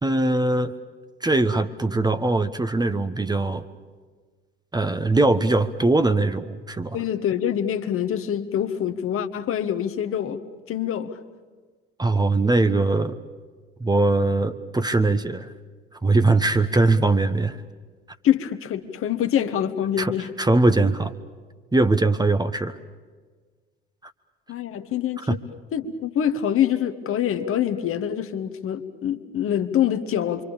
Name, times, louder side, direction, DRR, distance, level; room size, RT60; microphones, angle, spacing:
voice 1, 0.0-0.7 1.2-3.7 4.7-7.0 12.0-13.2 13.8-15.5 16.0-17.6 20.0-21.1 21.7-22.8 24.0-24.1 25.3-25.4, right 2 dB, 15° right, 9 dB, 1.2 m, -21 dB
voice 2, 6.9-11.2 18.2-20.3 24.5-25.4 25.7-30.4, left 10 dB, 45° left, 8 dB, 1.5 m, -25 dB
26.5 x 24.5 x 7.1 m, 1.5 s
figure-of-eight pair, 50°, 31 cm